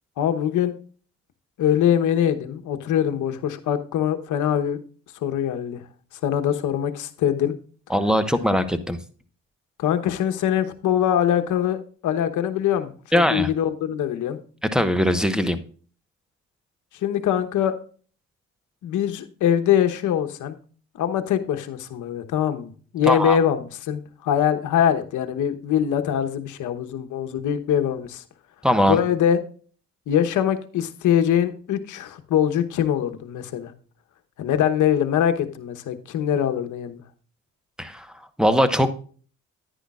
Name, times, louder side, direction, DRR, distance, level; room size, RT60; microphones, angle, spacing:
voice 1, 0.2-0.7 1.6-4.8 5.2-5.8 6.2-7.6 9.8-14.4 17.0-17.8 18.8-20.6 20.9-28.2 28.9-29.4 30.1-33.7 34.4-37.0, left 9 dB, 75° left, 8 dB, 1.1 m, -23 dB
voice 2, 7.9-9.0 13.1-13.5 14.7-15.6 23.1-23.4 28.6-29.0 37.8-38.1 38.4-38.9, equal, ahead, 10 dB, 1.1 m, -20 dB
10.0 x 10.0 x 2.4 m, 0.41 s
cardioid pair, 90°, 30 cm